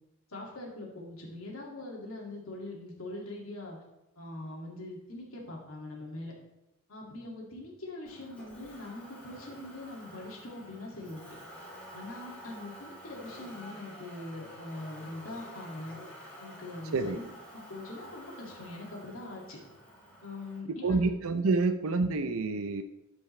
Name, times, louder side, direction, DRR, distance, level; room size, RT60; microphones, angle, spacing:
voice 1, 0.3-3.8 4.2-6.3 6.9-11.4 11.9-15.9 16.4-17.2 17.5-19.6 20.2-21.0, left 2 dB, 90° left, -2 dB, 2.3 m, -42 dB
Motor vehicle (road), 8.0-20.6, equal, 5° left, 2.5 m, -49 dB
voice 2, 20.7-22.8, right 3 dB, 85° right, 8 dB, 0.5 m, -28 dB
12.5 x 5.3 x 3.2 m, 0.92 s
head